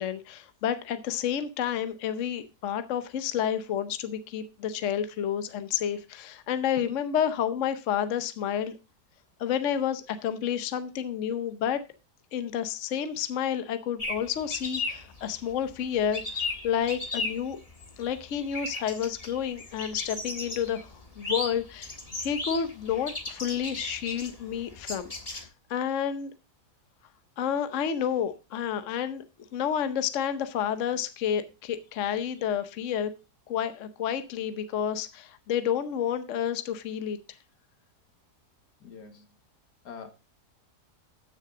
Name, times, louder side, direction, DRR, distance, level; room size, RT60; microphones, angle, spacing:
voice 1, 0.0-8.7 9.4-11.8 12.3-17.6 18.0-20.9 21.2-21.9 22.2-26.3 27.4-29.2 29.5-33.1 33.5-37.2, left 9 dB, 55° left, 10 dB, 1.0 m, -30 dB
sound 1, 14.0-25.4, left 2 dB, 25° left, 1.6 m, -36 dB
voice 2, 38.8-39.2 39.8-40.1, left 6 dB, 85° left, 6 dB, 2.2 m, -44 dB
13.5 x 6.5 x 3.7 m, 0.31 s
omnidirectional pair, 1.7 m